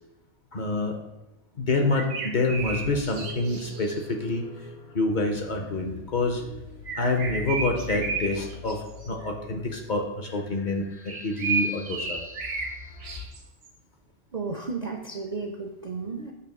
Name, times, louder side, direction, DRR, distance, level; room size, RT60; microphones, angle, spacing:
voice 1, 0.5-1.0 1.6-4.5 4.9-6.4 7.0-12.2, left 2 dB, 45° left, 3 dB, 0.7 m, -27 dB
sound 1, 1.9-4.0 6.8-8.8 9.0-9.3 11.1-12.7 13.0-13.7, right 4 dB, 85° right, 1.3 m, -32 dB
sound 2, 2.6-13.2, left 5 dB, 70° left, 1.3 m, -44 dB
voice 2, 14.3-16.3, right 4 dB, 55° right, 3 dB, 0.4 m, -33 dB
6.9 x 2.9 x 5.8 m, 0.99 s
omnidirectional pair, 1.2 m